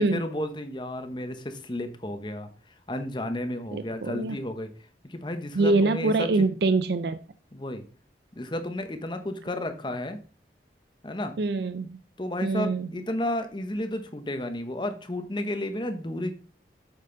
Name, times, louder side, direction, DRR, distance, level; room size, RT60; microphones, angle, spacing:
voice 1, 0.0-2.5 2.9-4.7 5.0-6.5 7.5-7.8 8.3-10.2 11.0-11.3 12.2-16.3, left 1 dB, 25° left, 8 dB, 0.9 m, -32 dB
voice 2, 3.7-4.4 5.5-7.2 11.4-12.0 12.4-12.9, right 3 dB, 65° right, 11 dB, 0.4 m, -24 dB
8.5 x 6.5 x 3.9 m, 0.41 s
head